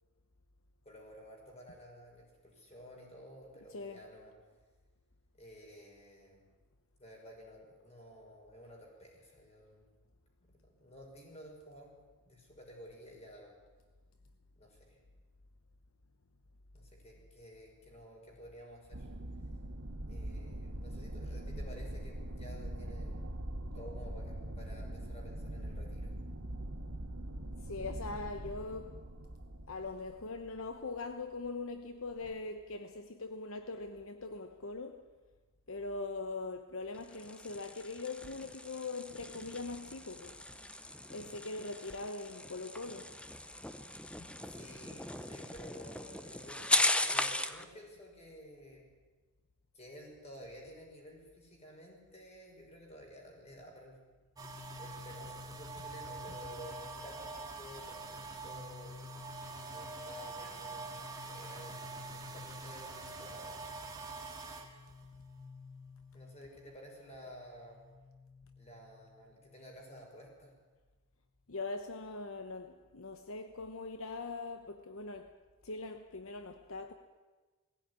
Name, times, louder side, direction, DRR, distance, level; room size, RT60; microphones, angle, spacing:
voice 1, 0.8-4.3 5.3-6.4 7.0-9.9 10.4-11.9 12.2-13.6 14.6-15.0 16.7-19.1 20.1-23.2 23.7-26.1 44.5-48.9 49.7-54.0 54.8-58.9 59.7-63.7 66.1-67.8 68.6-70.5, equal, 30° left, 6.0 m, -53 dB
voice 2, 3.7-4.1 27.6-29.1 29.7-35.1 35.7-40.4 41.1-43.1 44.2-44.3 56.3-56.4 71.5-75.4 75.6-76.9, left 3 dB, 65° left, 1.0 m, -42 dB
sound 1, 18.9-31.0 32.1-32.3, right 1 dB, 90° right, 1.8 m, -42 dB
sound 2, 36.9-47.6, left 1 dB, 5° left, 0.7 m, -37 dB
sound 3, 54.4-67.1 67.4-69.8, right 2 dB, 15° right, 2.0 m, -46 dB
19.5 x 16.0 x 9.9 m
head